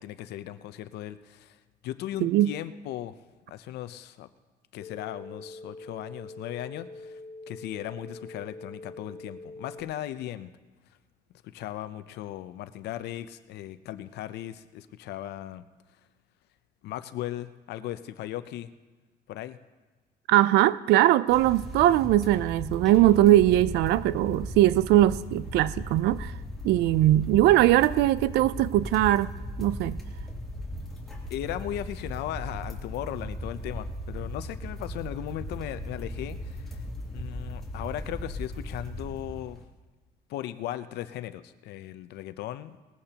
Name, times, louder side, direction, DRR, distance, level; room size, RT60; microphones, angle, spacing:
voice 1, 0.0-1.6 1.8-3.2 3.5-4.3 4.7-7.2 7.5-10.5 11.4-15.6 16.8-18.7 19.3-19.6 31.3-36.8 37.1-39.6 40.3-42.8, left 13 dB, 80° left, 0.7 m, -37 dB
voice 2, 2.2-2.5 20.3-26.3 26.6-29.3 29.6-30.0, right 14 dB, 80° right, 0.4 m, -21 dB
sound 1, 4.8-9.8, left 2 dB, 40° left, 2.1 m, -44 dB
sound 2, 21.3-39.6, left 1 dB, ahead, 2.9 m, -37 dB
20.0 x 14.5 x 2.9 m
cardioid pair, 110°, 17 cm